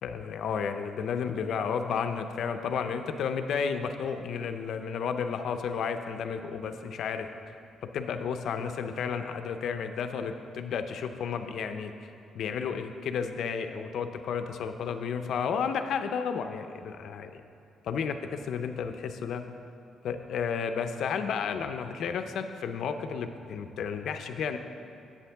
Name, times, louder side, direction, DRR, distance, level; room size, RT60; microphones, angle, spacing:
voice 1, 0.0-7.3 7.8-17.4 17.8-19.4 20.0-24.6, left 6 dB, 55° left, 8 dB, 0.5 m, -32 dB
9.9 x 8.2 x 3.4 m, 2.4 s
cardioid pair, 180°, 0 cm